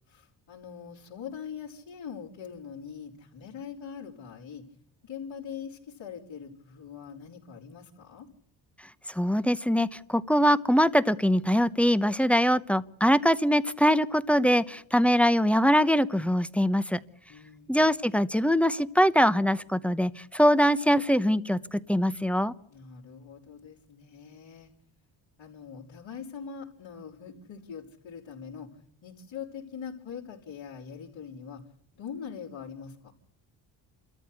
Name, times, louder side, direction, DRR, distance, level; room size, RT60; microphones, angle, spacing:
voice 1, 0.1-4.6 5.0-8.3 17.3-17.8 22.7-24.7 25.4-28.7 29.0-31.6 31.9-33.1, left 7 dB, 65° left, -6 dB, 4.5 m, -42 dB
voice 2, 9.1-17.0 17.7-22.5, equal, 5° left, 14 dB, 0.9 m, -23 dB
28.0 x 14.0 x 8.3 m, 0.71 s
supercardioid pair, 75°, 49 cm